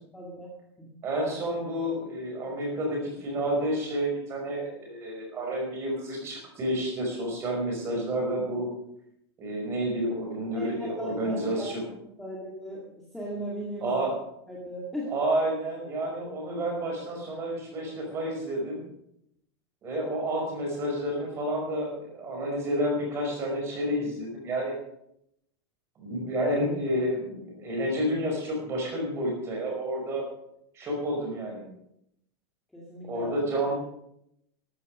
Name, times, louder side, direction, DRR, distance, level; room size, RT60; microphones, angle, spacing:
voice 1, 0.1-0.5 0.8-0.9 10.5-11.7 12.2-14.0 14.5-15.1 32.7-33.4, equal, ahead, -5 dB, 2.2 m, -37 dB
voice 2, 1.0-8.7 9.4-11.8 13.8-14.1 15.1-18.8 19.8-24.7 26.0-30.3 30.7-31.7 33.1-33.7, right 1 dB, 20° right, 1 dB, 5.0 m, -30 dB
13.5 x 12.5 x 6.3 m, 0.77 s
supercardioid pair, 180°, 14 cm